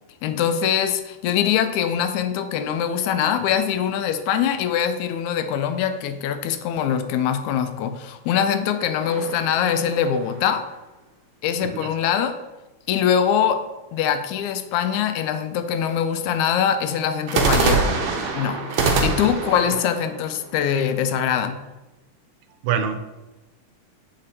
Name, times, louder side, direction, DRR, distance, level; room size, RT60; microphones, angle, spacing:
voice 1, 0.2-10.7 11.4-12.4 12.9-13.6 13.9-18.0 18.4-18.6 19.0-21.6, left 8 dB, 85° left, 9 dB, 1.9 m, -23 dB
sound 1, 9.1-10.5 17.3-21.2, right 4 dB, 65° right, 1.2 m, -24 dB
voice 2, 11.6-11.9 22.6-23.0, right 7 dB, 80° right, 8 dB, 1.9 m, -25 dB
7.5 x 4.3 x 4.0 m, 1.1 s
omnidirectional pair, 3.4 m